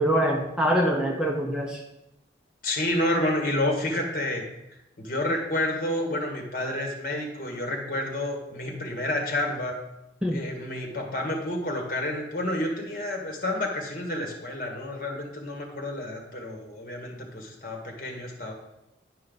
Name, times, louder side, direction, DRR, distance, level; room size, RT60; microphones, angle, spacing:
voice 1, 0.0-1.8 10.2-10.4, equal, 5° right, 0 dB, 0.6 m, -24 dB
voice 2, 2.6-4.4 5.0-9.8 10.3-18.5, left 1 dB, 45° left, 2 dB, 1.6 m, -29 dB
10.0 x 5.5 x 4.0 m, 0.86 s
head